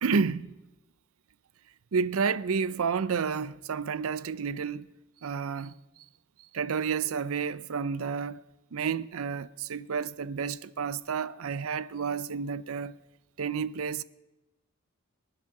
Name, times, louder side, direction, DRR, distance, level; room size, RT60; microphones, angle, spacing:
voice 1, 0.0-0.5 1.9-4.9 5.2-5.7 6.5-8.4 8.7-13.0 13.4-14.0, right 5 dB, 85° right, 0.5 m, -30 dB
22.5 x 9.1 x 6.0 m
head